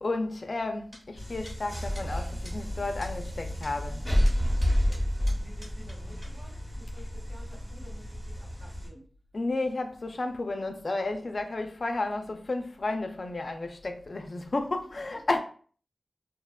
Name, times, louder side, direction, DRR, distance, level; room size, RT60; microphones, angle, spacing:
voice 1, 0.0-4.0 9.3-15.4, left 2 dB, 55° left, 0.3 m, -32 dB
sound 1, 0.9-1.0 1.5-1.6 2.0-2.1 2.5-2.6 3.0-3.1 3.6-3.7 4.3-6.0 6.2-6.3, equal, 45° right, 1.2 m, -48 dB
sound 2, 1.2-8.9, equal, 10° right, 0.9 m, -30 dB
voice 2, 4.6-9.0 14.8-15.2, equal, 60° right, 1.5 m, -52 dB
2.7 x 2.1 x 2.2 m
wide cardioid pair, 55°, 0 cm